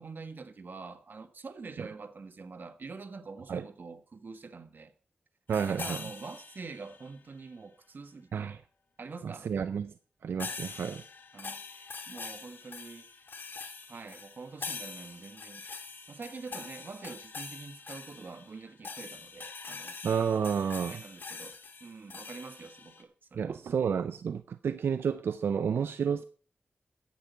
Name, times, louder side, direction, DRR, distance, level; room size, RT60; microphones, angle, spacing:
voice 1, 0.0-4.9 5.7-8.6 9.0-9.5 11.3-13.2 13.9-15.6 16.1-20.0 20.9-23.6, right 4 dB, 60° right, 1.4 m, -45 dB
sound 1, 5.5-7.1 10.4-23.0, left 4 dB, 65° left, 1.9 m, -44 dB
voice 2, 5.5-6.0 8.3-8.6 9.2-9.9 10.2-11.0 20.0-21.0 23.4-26.2, right 7 dB, 90° right, 0.5 m, -30 dB
14.0 x 10.0 x 4.5 m
cardioid pair, 65°, 4 cm